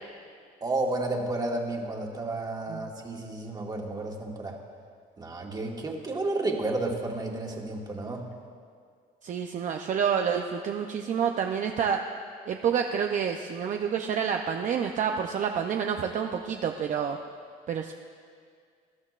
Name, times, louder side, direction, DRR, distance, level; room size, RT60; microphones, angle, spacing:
voice 1, 0.6-4.5 5.2-8.3, right 2 dB, 25° right, 0 dB, 1.6 m, -31 dB
voice 2, 9.2-12.0 12.5-17.2 17.7-17.9, right 7 dB, 50° right, 3 dB, 0.6 m, -28 dB
20.5 x 12.0 x 2.5 m, 2.1 s
cardioid pair, 110°, 17 cm